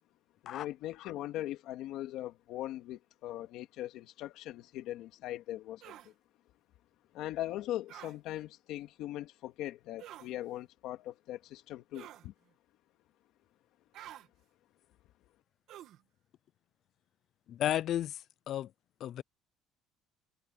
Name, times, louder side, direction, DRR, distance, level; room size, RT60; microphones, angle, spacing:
voice 1, 0.4-6.1 7.1-12.3, left 14 dB, 65° left, 2.3 m, -40 dB
sound 1, 5.8-6.1 7.9-8.2 10.0-10.3 11.9-12.3 13.9-14.3 15.7-16.0, right 12 dB, 55° right, 1.8 m, -49 dB
voice 2, 17.5-18.2 18.5-18.7 19.0-19.2, left 11 dB, 45° left, 0.3 m, -32 dB
cardioid pair, 160°, 0 cm